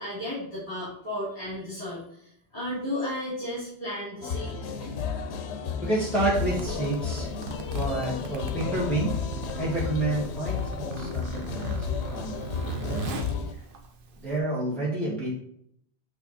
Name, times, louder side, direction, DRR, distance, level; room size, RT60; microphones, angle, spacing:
voice 1, 0.0-5.0, left 1 dB, 45° left, -10 dB, 3.1 m, -34 dB
sound 1, 4.2-13.5, left 6 dB, 85° left, 0.9 m, -32 dB
voice 2, 5.8-7.3 7.7-9.2 9.6-13.3 14.2-15.3, right 2 dB, ahead, -7 dB, 2.0 m, -29 dB
Zipper (clothing), 6.4-14.4, right 4 dB, 55° right, 0.9 m, -38 dB
8.3 x 3.5 x 4.1 m, 0.69 s
omnidirectional pair, 1.1 m